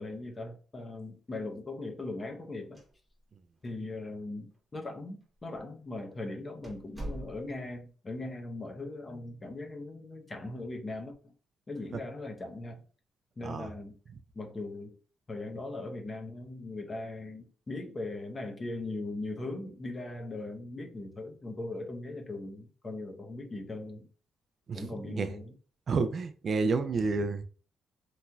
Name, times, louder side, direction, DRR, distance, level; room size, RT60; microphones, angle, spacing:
voice 1, 0.0-2.8 3.6-11.3 11.7-12.8 13.4-14.0 14.3-15.0 15.3-24.1 24.7-25.5, left 2 dB, 30° left, 0.7 m, -39 dB
open and close door, 2.6-3.4 3.6-3.7 4.5-4.6 5.4-5.6 6.0-6.1 6.6-7.8, right 1 dB, 10° right, 0.9 m, -43 dB
voice 2, 24.7-25.3 25.9-27.4, right 4 dB, 50° right, 0.3 m, -30 dB
3.0 x 2.7 x 2.3 m
cardioid pair, 90°, 0 cm